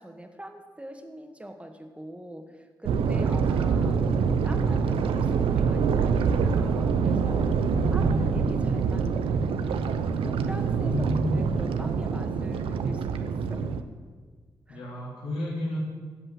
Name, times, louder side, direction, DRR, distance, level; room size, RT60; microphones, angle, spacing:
voice 1, 0.0-7.5 7.9-9.5 10.3-13.7 14.7-14.8, right 1 dB, 15° right, 5 dB, 1.8 m, -43 dB
sound 1, 2.8-13.8, right 5 dB, 85° right, 0.6 m, -25 dB
voice 2, 3.2-3.6 7.6-8.7 10.7-11.5 14.7-15.8, left 1 dB, 75° left, -5 dB, 3.4 m, -32 dB
16.0 x 5.4 x 7.8 m, 1.5 s
supercardioid pair, 50°, 9 cm